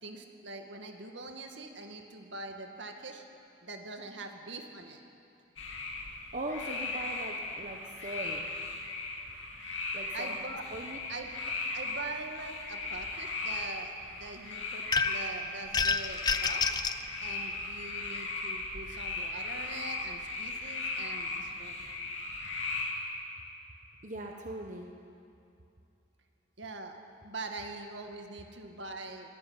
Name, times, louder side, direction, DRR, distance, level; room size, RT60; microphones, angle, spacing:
voice 1, 0.0-3.2 3.6-5.0 10.1-10.7 11.1-16.8 17.2-21.9 26.6-27.0 27.2-29.3, right 2 dB, 75° right, 3 dB, 2.1 m, -43 dB
sound 1, 5.6-22.9, left 3 dB, 80° left, 2.9 m, -37 dB
voice 2, 6.3-8.5 9.9-10.4 10.7-11.0 24.0-24.9, right 1 dB, 40° right, 1 dB, 1.2 m, -40 dB
sound 2, 14.9-15.3 15.7-17.0, left 4 dB, 20° left, 0.5 m, -28 dB
23.5 x 13.0 x 9.7 m, 2.6 s
head